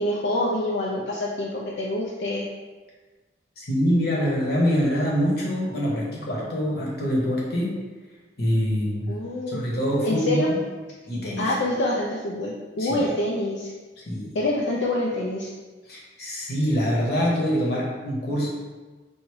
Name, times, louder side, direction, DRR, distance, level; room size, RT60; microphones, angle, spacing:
voice 1, 0.0-2.5 9.1-9.6 10.0-10.5 11.4-13.7 14.3-15.5, left 1 dB, 80° left, -3 dB, 0.5 m, -26 dB
voice 2, 3.6-7.7 8.4-9.1 9.5-10.6 11.1-11.5 12.8-13.0 14.0-14.3 15.9-18.5, equal, 55° left, -4 dB, 1.0 m, -25 dB
4.7 x 2.6 x 3.1 m, 1.3 s
head